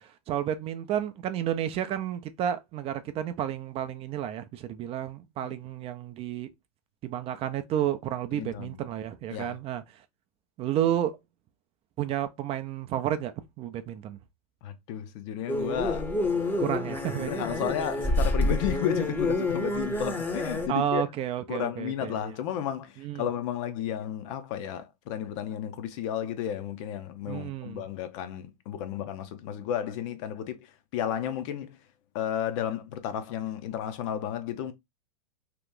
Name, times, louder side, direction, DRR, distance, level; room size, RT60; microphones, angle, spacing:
voice 1, 0.0-6.5 7.0-9.8 10.6-11.2 12.0-13.3 13.6-14.2 16.6-17.7 20.7-22.1 23.0-23.3 27.3-27.8, right 10 dB, 30° right, 0.4 m, -31 dB
voice 2, 8.3-8.8 9.3-9.6 14.6-16.5 17.3-21.0 21.5-31.8 32.1-34.7, left 10 dB, 55° left, 0.6 m, -33 dB
sound 1, 15.5-20.7, left 2 dB, 10° left, 0.7 m, -28 dB
2.9 x 2.4 x 3.6 m
hypercardioid pair, 110°, 20 cm